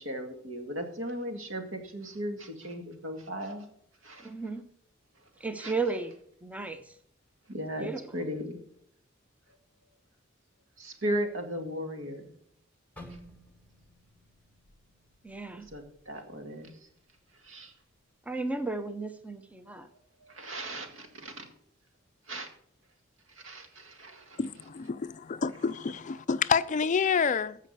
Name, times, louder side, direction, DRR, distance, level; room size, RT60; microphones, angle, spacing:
voice 1, 0.0-3.6 4.0-4.3 5.6-5.7 7.5-7.9 8.1-8.6 10.8-12.3 15.7-16.7 17.4-17.7 20.2-21.5 22.3-22.5 23.4-24.4, equal, 75° right, 2.1 m, -36 dB
voice 2, 4.2-4.7 5.4-6.9 7.8-8.0 15.2-15.7 18.3-19.9, right 3 dB, 5° right, 0.7 m, -34 dB
sound 1, 13.0-17.0 17.3-17.6 18.3-18.6, equal, 10° left, 1.5 m, -53 dB
voice 3, 24.4-27.6, left 6 dB, 40° left, 0.4 m, -28 dB
15.0 x 5.4 x 6.6 m
head